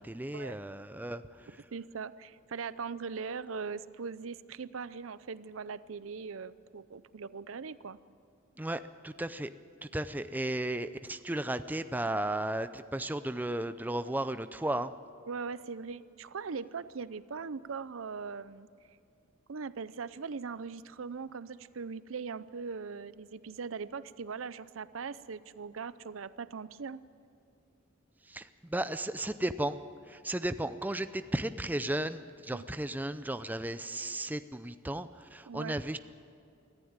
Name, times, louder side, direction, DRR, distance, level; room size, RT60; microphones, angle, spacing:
voice 1, 0.0-1.6 8.6-9.5 9.8-14.9 28.2-29.8 30.1-36.0, right 1 dB, 10° right, 11 dB, 0.5 m, -35 dB
voice 2, 1.7-8.0 15.3-18.7 19.5-27.0 32.5-32.6 35.5-35.8, right 5 dB, 80° right, 16 dB, 0.6 m, -40 dB
24.0 x 14.5 x 8.9 m, 2.5 s
head